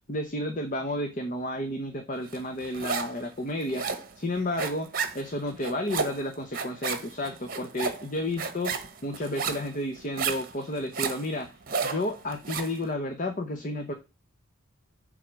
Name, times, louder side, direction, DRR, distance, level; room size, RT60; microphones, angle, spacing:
voice 1, 0.1-11.5 11.8-13.9, left 1 dB, 40° left, 6 dB, 0.9 m, -32 dB
sound 1, 2.3-3.2 3.5-12.8, right 5 dB, 40° right, 1.2 m, -33 dB
7.8 x 3.8 x 6.1 m, 0.28 s
head